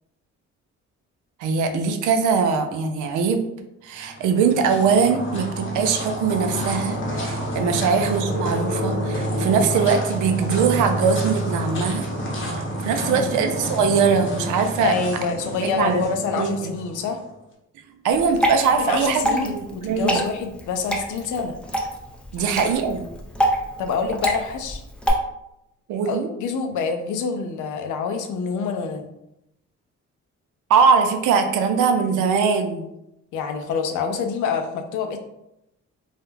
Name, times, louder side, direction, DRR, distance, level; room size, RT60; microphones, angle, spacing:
voice 1, 1.4-3.4 3.8-12.1 12.4-15.0 15.6-16.0 16.3-16.7 18.0-20.2 22.3-23.1 25.9-26.3 30.7-32.9, right 5 dB, 80° right, 6 dB, 0.5 m, -21 dB
sound 1, 4.0-17.3, right 1 dB, 40° left, 0.8 m, -29 dB
voice 2, 14.8-17.2 18.8-21.5 22.4-22.5 23.8-24.8 26.0-29.1 33.3-35.2, left 5 dB, 80° left, 5 dB, 0.5 m, -27 dB
Water / Drip, 18.1-25.1, equal, 5° left, 0.4 m, -26 dB
2.3 x 2.1 x 3.1 m, 0.84 s
cardioid pair, 90°, 30 cm